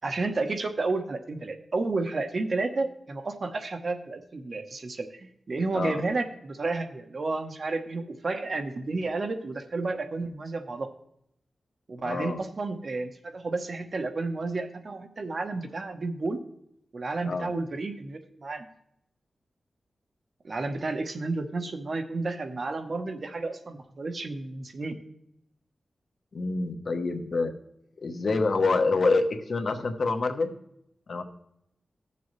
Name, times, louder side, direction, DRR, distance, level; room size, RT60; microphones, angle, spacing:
voice 1, 0.0-10.9 11.9-16.4 16.9-18.7 20.4-25.0, right 3 dB, 50° right, 7 dB, 1.0 m, -31 dB
voice 2, 5.7-6.1 12.0-12.4 17.2-17.5 26.3-27.5 28.0-30.5 31.1-31.2, left 3 dB, 55° left, 6 dB, 1.0 m, -26 dB
16.5 x 6.9 x 3.2 m, 0.76 s
wide cardioid pair, 130°, 0 cm